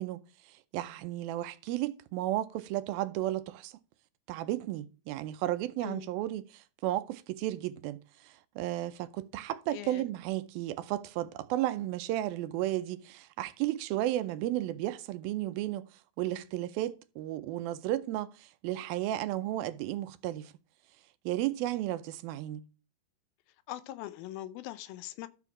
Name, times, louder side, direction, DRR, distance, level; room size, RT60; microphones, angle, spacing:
voice 1, 0.0-3.8 4.3-15.9 16.2-20.5 21.3-22.7, right 14 dB, 80° right, 2.3 m, -34 dB
voice 2, 9.7-10.1 23.7-25.3, left 14 dB, 80° left, 2.4 m, -41 dB
13.0 x 4.5 x 5.9 m
omnidirectional pair, 4.4 m